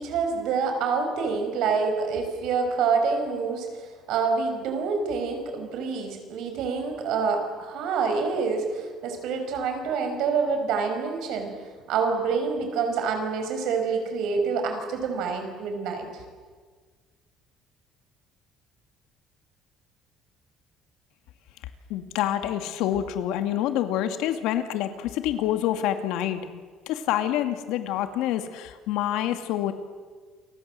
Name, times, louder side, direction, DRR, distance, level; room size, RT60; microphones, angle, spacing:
voice 1, 0.0-11.5 11.9-16.1, right 5 dB, 65° right, 5 dB, 6.2 m, -27 dB
voice 2, 21.9-29.7, left 11 dB, 80° left, 8 dB, 2.3 m, -27 dB
29.0 x 24.5 x 7.8 m, 1.5 s
cardioid pair, 170°, 0 cm